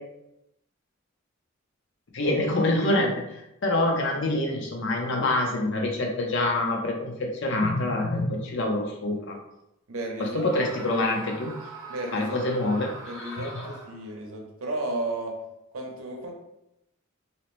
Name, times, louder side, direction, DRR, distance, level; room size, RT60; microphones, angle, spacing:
voice 1, 2.1-3.2 3.6-9.4 10.2-11.5 12.1-12.9 13.3-13.4, left 2 dB, 60° left, 1 dB, 0.6 m, -26 dB
voice 2, 9.9-10.4 10.8-11.1 11.9-12.7 13.1-15.4 15.7-16.3, right 1 dB, 90° right, 1 dB, 0.6 m, -34 dB
Screaming, 10.3-14.1, right 2 dB, 15° right, 0.4 m, -42 dB
2.8 x 2.0 x 3.0 m, 0.86 s
head